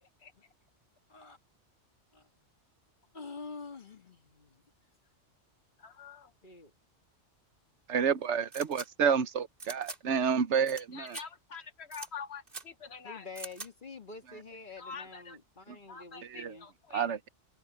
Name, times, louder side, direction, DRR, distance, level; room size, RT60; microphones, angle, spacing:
voice 1, 3.1-4.6 6.4-6.7 13.0-16.7, left 4 dB, 40° left, 1.9 m, -47 dB
voice 2, 5.8-6.3 10.9-13.3 14.8-15.4 15.9-17.1, left 6 dB, 65° left, 1.4 m, -45 dB
voice 3, 7.9-11.2 16.2-16.5 16.9-17.3, right 6 dB, 75° right, 1.2 m, -29 dB
sound 1, 8.5-8.9 9.6-10.0 10.7-10.8 11.1-11.2 11.9-12.1 12.5-12.6 13.4-13.7, right 3 dB, 50° right, 2.5 m, -43 dB
omnidirectional pair, 1.2 m